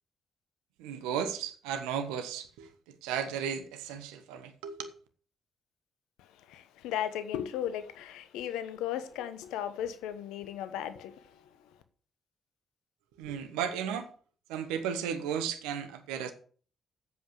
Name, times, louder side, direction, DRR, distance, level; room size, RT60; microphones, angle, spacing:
voice 1, 0.8-4.9 13.2-14.1 14.5-16.3, right 8 dB, 75° right, 1.3 m, -35 dB
voice 2, 6.2-11.6, left 10 dB, 75° left, 1.1 m, -36 dB
8.5 x 7.8 x 6.9 m
hypercardioid pair, 40°, 0 cm